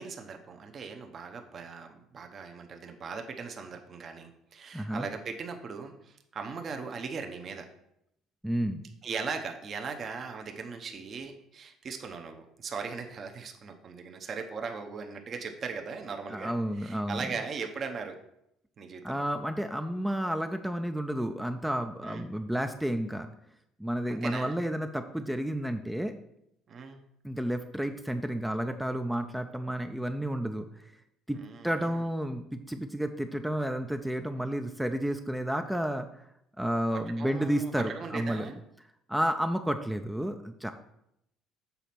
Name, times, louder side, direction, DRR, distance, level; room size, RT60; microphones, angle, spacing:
voice 1, 0.0-7.7 9.0-18.2 18.8-19.2 22.0-22.2 24.1-24.6 26.7-27.0 31.3-32.0 36.9-38.6, right 5 dB, 35° right, 4 dB, 0.8 m, -39 dB
voice 2, 4.7-5.1 8.4-8.8 16.3-17.3 19.0-23.3 23.8-26.1 27.2-30.7 31.3-36.1 36.6-38.5 39.1-40.7, equal, 5° right, 7 dB, 0.4 m, -31 dB
7.0 x 4.1 x 5.8 m, 0.78 s
cardioid pair, 140°, 0 cm